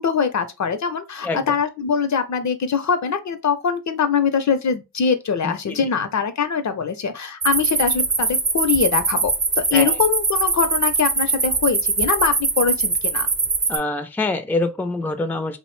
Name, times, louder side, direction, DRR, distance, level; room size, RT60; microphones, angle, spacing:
voice 1, 0.0-13.3, left 6 dB, 55° left, 0.5 m, -23 dB
voice 2, 5.4-5.8 9.7-10.0 13.7-15.6, left 2 dB, 5° left, 0.4 m, -25 dB
sound 1, 7.4-13.8, right 4 dB, 35° right, 0.7 m, -22 dB
2.5 x 2.0 x 3.0 m
cardioid pair, 45°, 33 cm